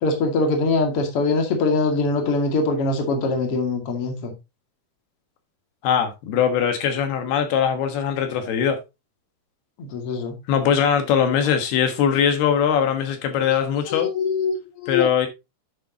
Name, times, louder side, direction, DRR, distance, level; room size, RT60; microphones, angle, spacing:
voice 1, 0.0-4.3 9.8-10.4 13.5-15.1, left 3 dB, 40° left, 2.6 m, -23 dB
voice 2, 5.8-8.8 10.5-14.1 14.9-15.3, left 8 dB, 80° left, 3.3 m, -21 dB
11.0 x 6.9 x 2.8 m
omnidirectional pair, 4.5 m